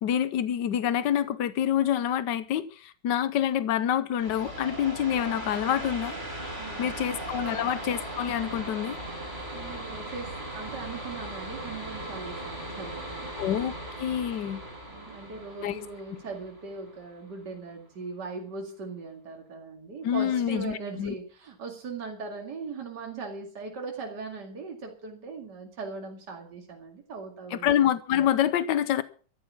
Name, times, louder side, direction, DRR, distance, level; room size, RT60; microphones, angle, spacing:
voice 1, 0.0-6.1 6.8-9.0 13.4-14.6 15.6-15.8 20.0-21.1 27.5-29.0, left 10 dB, 80° left, 1.5 m, -27 dB
sound 1, 4.2-17.5, right 1 dB, 25° right, 4.5 m, -38 dB
voice 2, 6.6-7.1 7.4-7.6 9.5-13.5 14.9-27.7, right 4 dB, 70° right, 2.9 m, -39 dB
14.0 x 12.0 x 6.0 m
omnidirectional pair, 1.9 m